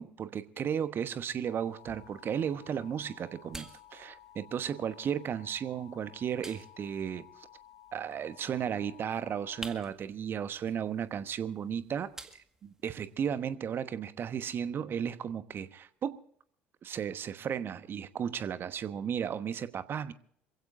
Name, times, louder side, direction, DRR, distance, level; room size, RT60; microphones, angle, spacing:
voice 1, 0.0-7.3 7.9-16.2 16.8-20.1, right 8 dB, 40° right, 1.1 m, -34 dB
sound 1, 1.3-13.3, right 2 dB, 10° right, 1.8 m, -53 dB
Alarm, 1.5-9.6, left 11 dB, 45° left, 5.7 m, -55 dB
27.0 x 16.0 x 2.6 m
figure-of-eight pair, 60°, 6 cm